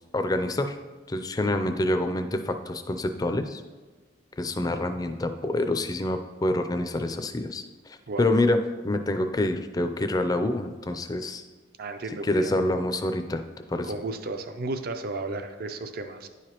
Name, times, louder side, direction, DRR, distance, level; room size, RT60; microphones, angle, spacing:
voice 1, 0.1-0.7 1.1-3.6 4.4-7.6 7.9-11.4 12.2-13.4 13.7-13.9, left 1 dB, 20° left, 7 dB, 0.4 m, -27 dB
voice 2, 11.8-12.5 13.8-16.3, right 2 dB, 55° right, 8 dB, 0.4 m, -33 dB
9.9 x 4.9 x 2.9 m, 1.3 s
head